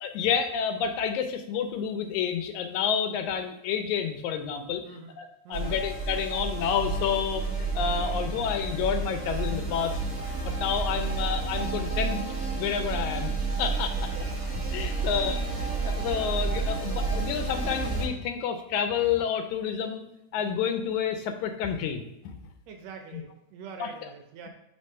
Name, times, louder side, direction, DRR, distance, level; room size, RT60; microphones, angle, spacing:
voice 1, 0.0-4.8 5.2-10.0 10.4-12.2 12.6-14.1 14.5-15.5 15.8-20.0 20.3-22.4 23.1-23.2 23.8-23.9, left 7 dB, 85° left, 7 dB, 2.0 m, -29 dB
voice 2, 4.8-5.2 5.4-5.8 13.9-14.3 14.8-15.1 22.7-24.5, right 6 dB, 75° right, 4 dB, 1.7 m, -45 dB
sound 1, 5.5-18.1, right 3 dB, 50° right, 0.8 m, -30 dB
5.2 x 3.7 x 5.4 m, 0.86 s
omnidirectional pair, 3.3 m